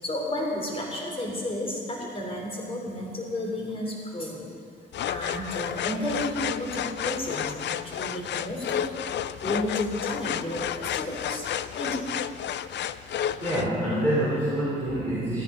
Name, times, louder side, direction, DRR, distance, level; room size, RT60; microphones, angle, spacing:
voice 1, 0.0-4.5 5.1-8.8 9.4-11.5 11.7-12.0, left 1 dB, 30° left, -1 dB, 3.5 m, -32 dB
sound 1, 4.9-13.7, left 10 dB, 65° left, 0.5 m, -31 dB
voice 2, 13.4-15.4, right 1 dB, 10° left, -8 dB, 3.7 m, -26 dB
15.0 x 10.5 x 5.0 m, 2.1 s
cardioid pair, 90°, 20 cm